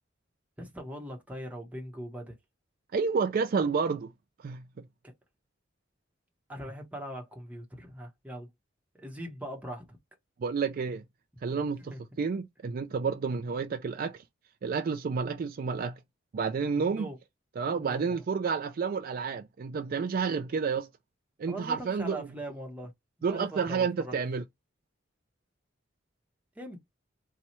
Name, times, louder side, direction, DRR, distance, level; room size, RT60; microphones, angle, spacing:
voice 1, 0.6-2.4 6.5-8.5 9.0-10.0 11.9-12.2 16.8-17.2 17.7-18.2 21.5-22.9 23.2-24.1 26.6-26.8, right 1 dB, 10° right, 1.0 m, -41 dB
voice 2, 2.9-4.1 4.4-4.6 10.4-11.0 11.4-14.2 14.6-16.0 16.3-17.1 17.6-20.9 21.4-22.3 23.2-24.4, right 5 dB, 50° right, 0.3 m, -30 dB
4.1 x 2.3 x 2.9 m
head